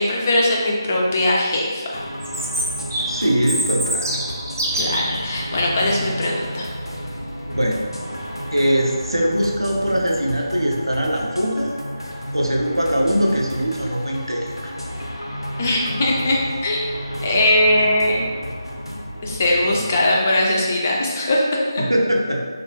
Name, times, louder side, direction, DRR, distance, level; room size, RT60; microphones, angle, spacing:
voice 1, 0.0-2.0 4.7-6.7 15.6-16.9 17.2-18.2 19.2-21.4, left 1 dB, 25° left, -3 dB, 0.4 m, -20 dB
sound 1, 1.9-20.1, equal, 80° left, 0.5 m, -32 dB
Chirp tweet, 2.2-5.2, right 1 dB, 40° right, 0.6 m, -25 dB
voice 2, 3.1-4.2 7.5-7.9 8.5-11.7 12.3-14.7 21.8-22.5, equal, 85° right, -1 dB, 0.6 m, -21 dB
3.5 x 2.0 x 2.8 m, 1.5 s
figure-of-eight pair, 160°, 2 cm